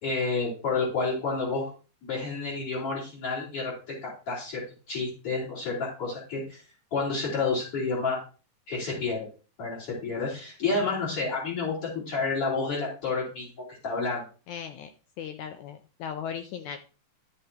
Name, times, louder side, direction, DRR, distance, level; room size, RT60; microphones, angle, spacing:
voice 1, 0.0-1.7 2.0-6.6 6.9-8.2 8.7-9.3 9.6-14.2, left 4 dB, 45° left, -8 dB, 4.4 m, -30 dB
voice 2, 14.5-14.9 15.2-16.8, left 8 dB, 75° left, 8 dB, 1.9 m, -37 dB
12.0 x 7.2 x 2.9 m, 0.35 s
omnidirectional pair, 3.7 m